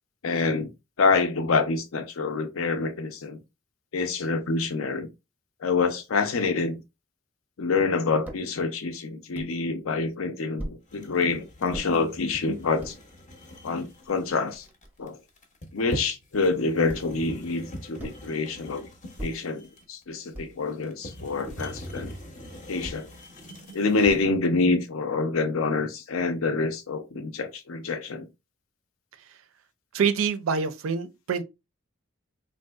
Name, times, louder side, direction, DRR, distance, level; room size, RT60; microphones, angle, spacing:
voice 1, 0.2-0.7 1.0-3.4 3.9-5.1 5.6-6.8 7.6-12.9 13.6-14.7 15.0-15.2 15.7-18.9 19.2-22.1 22.7-23.1 23.7-28.3, left 4 dB, 80° left, 0.5 m, -26 dB
sound 1, 8.3-8.5 9.3-9.6 10.6-10.8 11.7-11.9 12.6-13.0 13.7-13.8 14.0-15.1 16.9-17.2 18.0-18.3 19.2-19.5 20.3-20.7 21.5-21.8 22.8-23.1 24.0-24.5, right 1 dB, 10° right, 0.5 m, -39 dB
sound 2, 10.9-24.2, equal, 35° left, 0.6 m, -42 dB
voice 2, 29.9-31.4, right 6 dB, 80° right, 0.4 m, -26 dB
3.4 x 2.6 x 2.3 m
head